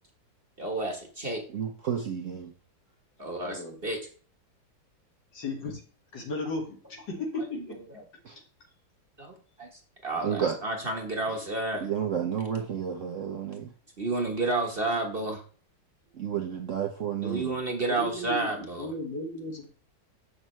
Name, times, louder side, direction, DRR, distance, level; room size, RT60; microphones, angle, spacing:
voice 1, 0.6-1.4 3.2-4.0 7.5-7.6 7.9-8.0 9.2-11.9 14.0-15.4 17.2-18.9, right 2 dB, 35° right, 1.2 m, -31 dB
voice 2, 1.5-2.5 8.2-8.4 10.2-10.6 11.8-13.7 16.2-17.5, right 8 dB, 55° right, 0.9 m, -31 dB
voice 3, 3.4-3.8 5.3-5.8 6.1-7.8 17.9-19.7, left 2 dB, 70° left, 2.6 m, -35 dB
7.5 x 6.5 x 3.1 m
omnidirectional pair, 2.0 m